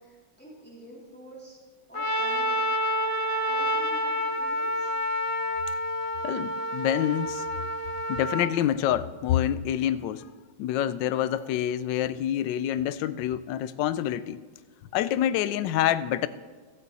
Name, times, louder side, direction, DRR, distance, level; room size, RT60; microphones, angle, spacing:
voice 1, 0.0-1.6 1.9-2.6 3.5-4.9, right 1 dB, 5° left, -5 dB, 3.5 m, -47 dB
Trumpet, 1.9-8.5, equal, 35° left, 0.5 m, -28 dB
voice 2, 6.2-7.4 8.1-10.3 10.6-14.4 14.9-16.3, left 11 dB, 75° left, 14 dB, 1.2 m, -27 dB
16.0 x 14.5 x 4.1 m, 1.5 s
omnidirectional pair, 2.2 m